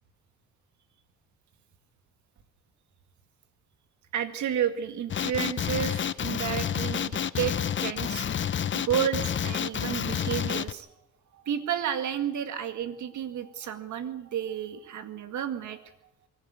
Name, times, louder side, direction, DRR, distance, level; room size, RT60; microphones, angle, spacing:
voice 1, 4.1-8.5 8.7-10.9 11.3-15.9, right 9 dB, 70° right, 10 dB, 2.1 m, -31 dB
Male speech man speaking, 5.1-10.7, left 8 dB, 40° left, 0.7 m, -29 dB
24.0 x 11.5 x 9.5 m, 0.85 s
cardioid pair, 90°, 30 cm